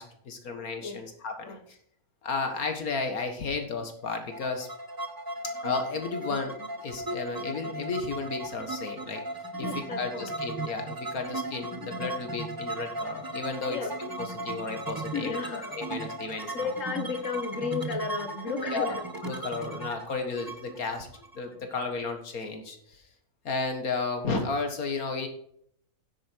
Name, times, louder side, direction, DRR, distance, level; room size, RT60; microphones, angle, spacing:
voice 1, 0.0-1.6 2.2-4.7 5.6-6.6 6.8-9.2 9.6-13.8 14.2-16.7 18.7-21.1 21.4-23.0 23.4-25.3, left 4 dB, 75° left, 5 dB, 2.1 m, -33 dB
Flute Groove live, 4.1-21.8, right 2 dB, 20° right, 0.7 m, -37 dB
voice 2, 9.6-10.3 11.8-11.9 13.7-13.9 15.1-15.7 16.5-19.0, left 5 dB, 60° left, 8 dB, 1.7 m, -33 dB
10.0 x 8.4 x 4.5 m, 0.66 s
omnidirectional pair, 1.5 m